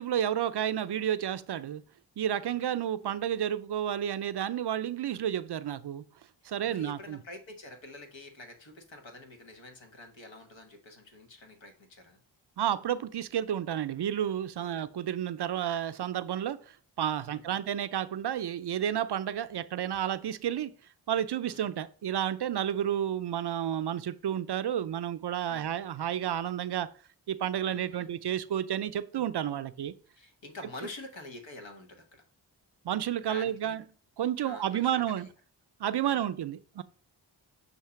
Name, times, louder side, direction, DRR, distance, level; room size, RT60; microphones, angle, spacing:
voice 1, 0.0-1.8 2.2-6.0 6.4-7.2 12.6-16.6 17.0-20.7 21.1-26.9 27.3-29.9 32.8-33.8 34.2-35.3 35.8-36.8, right 10 dB, 60° right, 0.5 m, -31 dB
voice 2, 2.5-2.9 6.4-12.2 14.6-14.9 17.3-17.6 21.5-21.7 25.5-25.7 27.7-28.1 30.2-32.2 33.2-33.7 34.4-35.3 36.0-36.3, left 2 dB, 70° left, 1.4 m, -47 dB
6.4 x 2.8 x 5.7 m
cardioid pair, 45°, 47 cm